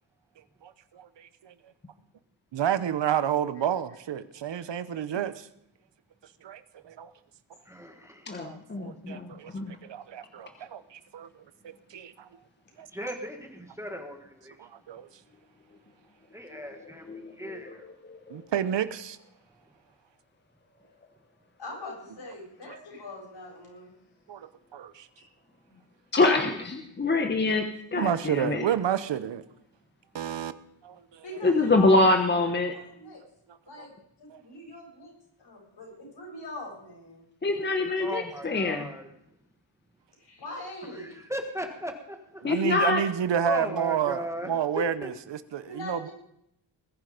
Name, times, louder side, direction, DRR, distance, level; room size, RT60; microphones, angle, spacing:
voice 1, 0.6-1.5 2.5-5.5 6.4-7.1 8.4-11.3 11.6-12.3 12.8-12.9 14.6-15.1 18.3-19.2 24.3-25.1 27.9-29.4 30.1-30.5 30.8-31.2 33.8-33.9 34.3-34.4 42.4-46.1, right 9 dB, 65° right, 1.0 m, -30 dB
voice 2, 7.6-8.5 12.9-14.6 16.3-17.1 17.3-17.9 26.5-26.6 27.0-27.1 38.0-39.1 40.9-42.4 43.4-44.5 45.0-45.1, equal, 5° right, 1.5 m, -37 dB
voice 3, 8.3-9.8 17.1-17.7 18.1-18.4 26.1-28.6 31.4-32.7 37.4-38.8 42.4-43.0, left 2 dB, 20° left, 1.1 m, -25 dB
voice 4, 21.6-23.9 25.2-25.3 25.6-25.8 31.2-33.2 33.7-33.9 34.2-35.1 35.4-37.2 40.2-41.2 45.7-46.1, left 2 dB, 60° left, 7.9 m, -42 dB
20.5 x 10.5 x 5.1 m
wide cardioid pair, 135°, 47 cm